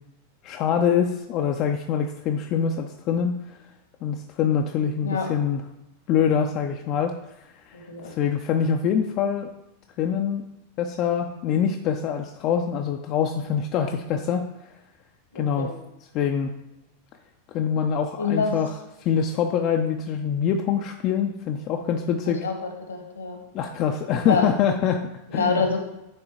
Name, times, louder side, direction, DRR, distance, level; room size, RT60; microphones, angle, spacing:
voice 1, 0.4-3.6 4.0-5.6 6.1-9.5 10.0-10.5 10.8-14.5 15.3-15.7 16.1-16.5 17.5-18.7 19.0-22.5 23.5-25.7, left 7 dB, 40° left, 4 dB, 0.4 m, -25 dB
voice 2, 7.7-8.1 15.3-15.7 18.2-18.5 22.4-22.5 22.9-23.4 24.2-24.5 25.3-25.8, left 4 dB, 70° left, 3 dB, 1.1 m, -26 dB
9.7 x 3.5 x 3.0 m, 0.89 s
figure-of-eight pair, 90°, 0 cm